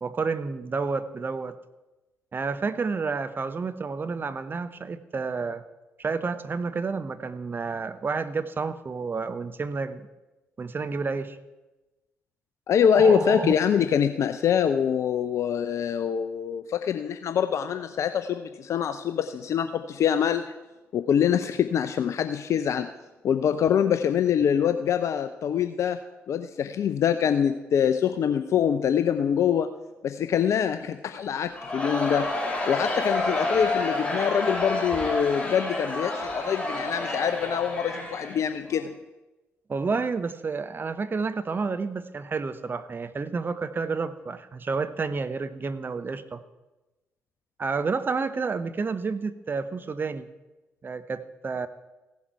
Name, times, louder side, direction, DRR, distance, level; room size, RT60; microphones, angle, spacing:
voice 1, 0.0-1.6 2.3-5.6 6.0-10.0 10.6-11.4 12.9-13.5 39.7-46.4 47.6-50.3 50.8-51.7, right 4 dB, 35° right, 12 dB, 0.8 m, -30 dB
voice 2, 12.7-20.5 20.9-22.9 23.2-26.0 26.3-29.7 30.0-32.3 32.7-38.9, left 8 dB, 55° left, 10 dB, 0.5 m, -24 dB
Crowd, 31.5-38.8, left 2 dB, 15° left, 4.3 m, -29 dB
15.5 x 7.3 x 4.7 m, 1.1 s
figure-of-eight pair, 45°, 6 cm